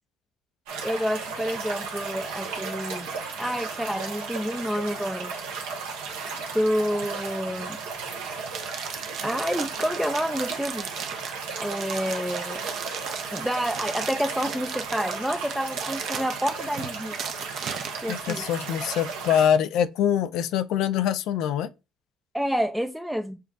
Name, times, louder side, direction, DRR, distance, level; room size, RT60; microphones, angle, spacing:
sound 1, 0.7-19.5, right 5 dB, 80° right, 1.1 m, -35 dB
voice 1, 0.8-3.1 3.4-5.3 6.5-7.8 9.2-10.9 11.6-12.7 13.3-17.2 18.0-18.5 22.3-23.4, equal, ahead, 0.5 m, -28 dB
sound 2, 8.5-18.5, right 7 dB, 55° right, 0.7 m, -37 dB
voice 2, 18.1-21.7, left 9 dB, 70° left, 0.4 m, -24 dB
6.7 x 2.4 x 2.4 m
supercardioid pair, 70°, 0 cm